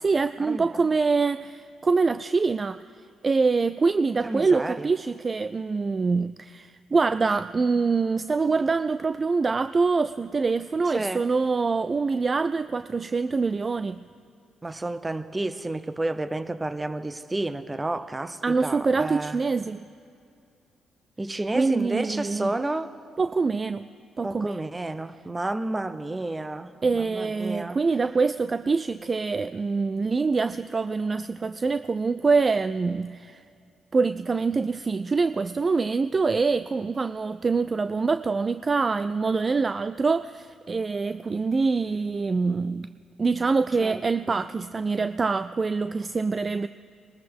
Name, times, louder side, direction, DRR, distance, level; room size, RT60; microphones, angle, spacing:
voice 1, 0.0-2.8 3.2-14.0 18.4-19.8 21.5-22.5 23.2-23.9 24.2-24.6 26.8-33.4 33.9-42.9 43.2-46.7, right 4 dB, 35° right, 13 dB, 0.3 m, -25 dB
voice 2, 4.2-4.9 10.9-11.2 14.6-19.4 21.2-22.9 24.2-27.8 43.8-44.0 44.3-44.4, right 2 dB, 20° right, 12 dB, 0.7 m, -31 dB
21.0 x 13.5 x 3.6 m, 2.5 s
supercardioid pair, 60°, 0 cm